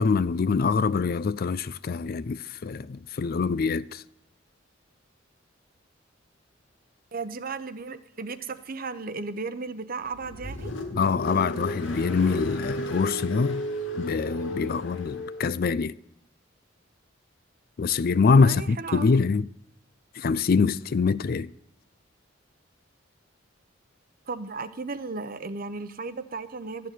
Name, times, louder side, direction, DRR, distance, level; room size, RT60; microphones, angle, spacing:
voice 1, 0.0-4.0 10.9-13.6 13.9-15.9 17.8-19.5 20.1-21.5, left 4 dB, 50° left, 0.4 m, -24 dB
voice 2, 7.1-10.7 18.4-19.1 24.3-26.9, right 4 dB, 45° right, 0.8 m, -35 dB
Car, 10.0-15.5, left 1 dB, 70° left, 2.1 m, -34 dB
13.5 x 6.7 x 9.1 m
head